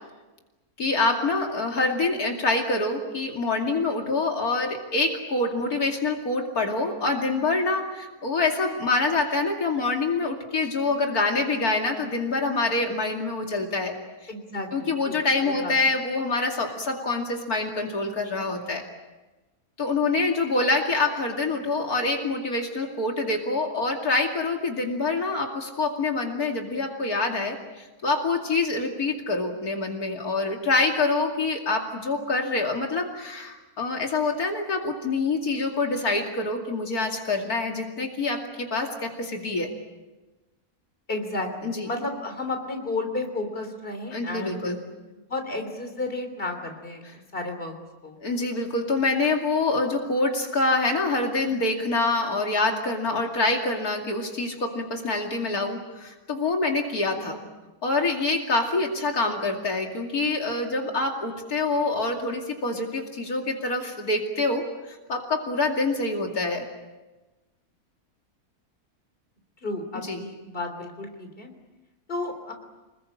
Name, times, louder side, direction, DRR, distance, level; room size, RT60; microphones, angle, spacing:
voice 1, 0.8-14.0 14.2-14.3 14.7-18.9 19.8-39.7 41.6-41.9 44.1-44.8 48.2-57.4 57.8-66.7 69.9-70.2, left 3 dB, 80° left, 2 dB, 3.0 m, -26 dB
voice 2, 14.3-15.2 15.4-15.7 41.1-44.7 45.3-47.0 47.3-47.7 48.0-48.2 69.6-71.5 72.1-72.5, left 2 dB, 35° left, 5 dB, 3.6 m, -32 dB
27.0 x 21.0 x 8.7 m, 1.1 s
omnidirectional pair, 1.6 m